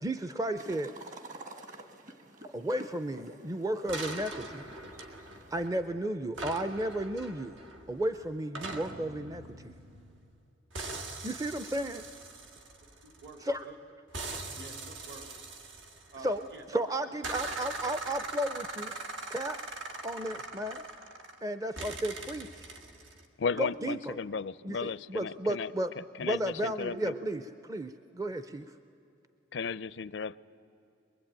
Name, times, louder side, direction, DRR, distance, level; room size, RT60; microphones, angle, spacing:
voice 1, 0.0-0.9 2.5-4.8 5.5-7.6 7.9-9.7 11.2-12.0 13.4-13.7 16.2-18.9 19.3-19.6 20.0-20.8 21.4-22.7 23.6-24.2 24.6-25.9 26.2-28.8, right 1 dB, 20° right, 10 dB, 0.5 m, -33 dB
sound 1, 0.6-5.7, right 1 dB, 40° right, 1.5 m, -49 dB
sound 2, 3.9-5.9 6.3-10.4 10.7-13.5 14.1-16.6 17.2-21.4 21.8-23.2, right 2 dB, 85° right, 2.1 m, -41 dB
voice 2, 13.0-13.8 14.5-15.3 16.1-16.8 23.5-23.7, right 2 dB, 60° right, 5 dB, 2.5 m, -48 dB
voice 3, 23.4-25.7 26.2-27.1 29.5-30.4, left 5 dB, 70° left, 18 dB, 0.5 m, -35 dB
23.0 x 22.5 x 8.9 m, 2.8 s
head